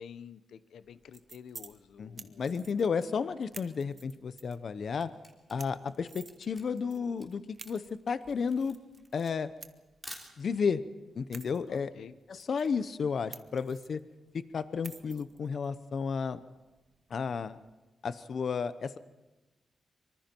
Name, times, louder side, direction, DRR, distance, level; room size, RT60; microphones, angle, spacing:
voice 1, 0.0-2.5 11.7-12.2, left 7 dB, 80° left, 13 dB, 0.8 m, -49 dB
sound 1, 0.8-17.7, right 4 dB, 35° right, 1.2 m, -54 dB
voice 2, 2.0-5.1 5.5-8.8 9.1-9.5 10.4-10.8 11.2-11.9 12.3-14.0 14.3-16.4 17.1-17.6 18.0-19.0, left 5 dB, 50° left, 13 dB, 0.7 m, -32 dB
Camera, 5.0-10.8, equal, 5° left, 3.4 m, -51 dB
25.0 x 24.5 x 4.5 m, 1.1 s
wide cardioid pair, 155°, 0 cm